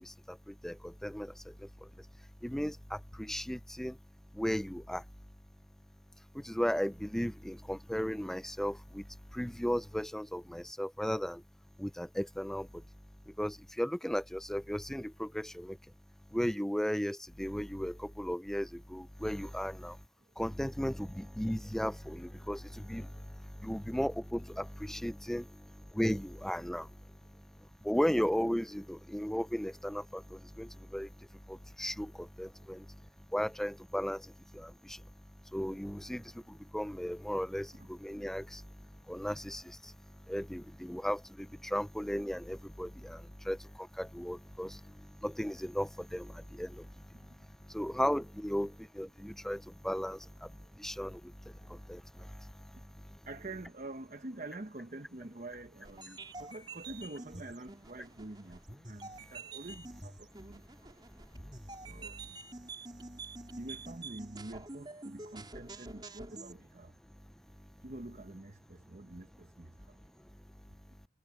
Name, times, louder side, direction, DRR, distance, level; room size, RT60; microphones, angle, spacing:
voice 1, 0.0-2.1 2.4-4.0 4.3-5.0 6.3-11.4 11.8-12.8 13.3-15.8 16.3-20.0 20.4-33.0 33.3-35.0 35.4-53.2 61.3-61.4, equal, 5° left, 0.4 m, -36 dB
voice 2, 53.3-58.6 58.9-60.6 61.9-62.1 63.6-66.9 67.8-69.7, right 2 dB, 45° right, 0.9 m, -46 dB
sound 1, 55.8-66.5, right 3 dB, 25° right, 3.7 m, -48 dB
head